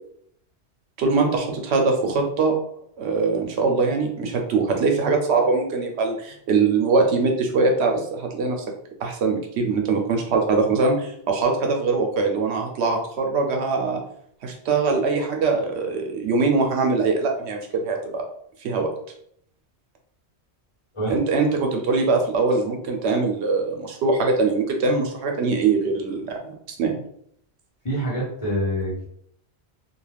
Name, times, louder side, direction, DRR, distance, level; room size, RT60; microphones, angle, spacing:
voice 1, 1.0-2.5 3.0-8.6 9.0-14.0 14.4-18.2 18.6-18.9 21.1-26.5 26.8-26.9, right 4 dB, 80° right, 2 dB, 0.9 m, -22 dB
voice 2, 27.8-29.1, equal, 30° left, -7 dB, 1.1 m, -26 dB
2.4 x 2.3 x 3.3 m, 0.68 s
omnidirectional pair, 1.1 m